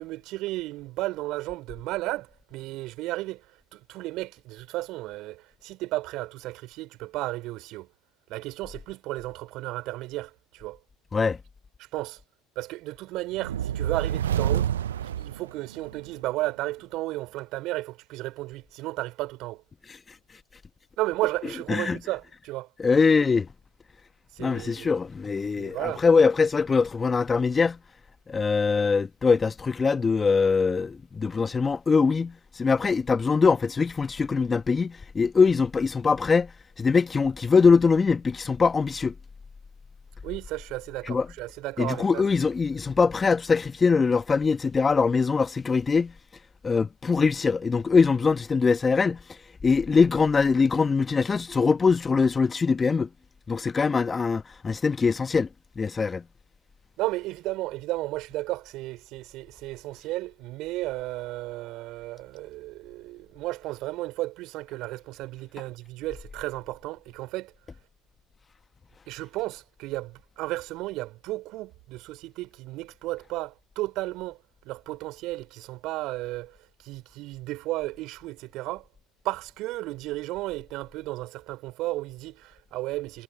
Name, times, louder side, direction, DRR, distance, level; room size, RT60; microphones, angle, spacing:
voice 1, 0.0-3.5 3.7-7.9 8.3-10.8 11.8-12.2 12.6-14.7 15.0-19.6 21.0-22.7 24.3-24.9 25.5-26.0 40.2-42.2 57.0-67.5 69.1-74.4 74.6-78.9 79.2-83.2, right 18 dB, 60° right, 4.2 m, -33 dB
sound 1, 13.3-16.1, right 10 dB, 85° right, 0.4 m, -28 dB
voice 2, 22.8-23.5 24.4-27.8 28.3-36.5 36.8-39.1 41.1-41.3 41.8-46.1 46.6-53.1 53.5-55.5 55.8-56.2, left 5 dB, 25° left, 1.2 m, -22 dB
hypercardioid pair, 70°, 0 cm